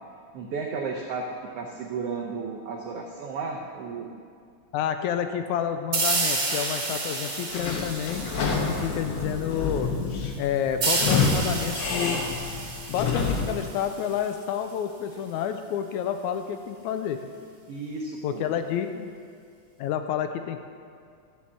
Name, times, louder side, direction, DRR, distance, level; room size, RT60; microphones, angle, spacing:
voice 1, 0.3-4.2 17.7-18.4, right 4 dB, 75° right, 0 dB, 1.4 m, -33 dB
voice 2, 4.7-8.2 8.7-9.9 10.4-12.2 12.9-17.2 18.2-19.1 19.8-20.6, left 9 dB, 80° left, 8 dB, 1.8 m, -29 dB
sound 1, 5.9-9.3 10.8-14.3, right 3 dB, 45° right, 2.0 m, -30 dB
Sliding door / Squeak, 7.5-13.6, left 4 dB, 60° left, 1.9 m, -28 dB
13.0 x 5.5 x 7.4 m, 2.2 s
omnidirectional pair, 3.7 m